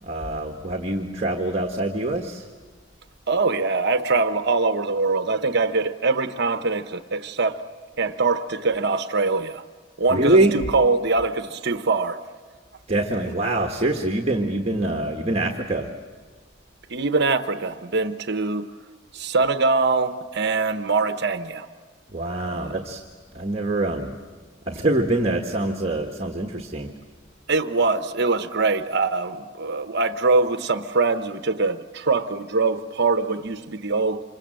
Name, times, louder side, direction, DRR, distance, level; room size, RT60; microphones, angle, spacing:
voice 1, 0.0-2.5 10.1-10.7 12.9-15.9 22.1-23.0 23.3-24.1 24.7-26.9, right 2 dB, 30° right, 2 dB, 1.6 m, -24 dB
voice 2, 3.3-7.6 8.0-9.6 10.0-12.2 16.9-18.7 19.1-21.7 22.5-22.7 27.5-34.2, right 3 dB, 55° right, 10 dB, 1.0 m, -23 dB
27.5 x 25.0 x 7.7 m, 1.5 s
head